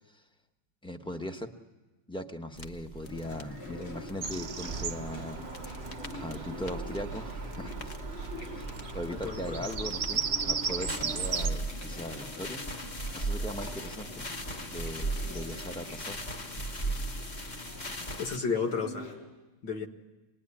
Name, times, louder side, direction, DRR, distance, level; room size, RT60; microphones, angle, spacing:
voice 1, 0.8-1.5 2.1-5.4 6.2-7.9 8.5-8.7 8.9-12.6 13.1-14.3 14.7-16.2, left 1 dB, 5° left, 5 dB, 0.6 m, -39 dB
sound 1, 2.5-18.4, right 2 dB, 30° left, 0.9 m, -39 dB
Chewing mastication, 3.0-19.1, left 2 dB, 85° left, 5.7 m, -45 dB
Bird vocalization bird call bird song, 4.2-11.5, right 6 dB, 45° right, 0.9 m, -36 dB
voice 2, 9.1-9.7 18.2-19.2 19.6-19.9, left 5 dB, 60° left, 4 dB, 2.1 m, -32 dB
26.0 x 20.5 x 9.8 m, 1.1 s
omnidirectional pair, 2.3 m